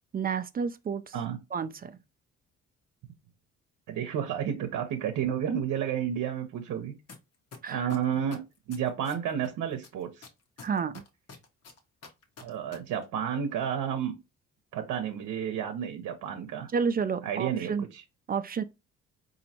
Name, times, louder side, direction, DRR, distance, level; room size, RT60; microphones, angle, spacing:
voice 1, 0.1-1.1 1.5-2.0 7.6-7.9 10.6-11.0 16.7-17.9 18.3-18.6, right 6 dB, 30° right, 0.4 m, -30 dB
voice 2, 3.9-6.9 7.7-8.4 8.7-10.3 12.4-14.1 14.7-16.7 17.2-18.0, right 9 dB, 80° right, 0.7 m, -31 dB
sound 1, 7.1-7.2 7.5-9.5 9.8-12.8 13.0-13.1, left 5 dB, 55° left, 1.0 m, -46 dB
4.1 x 2.7 x 2.8 m
cardioid pair, 90°, 30 cm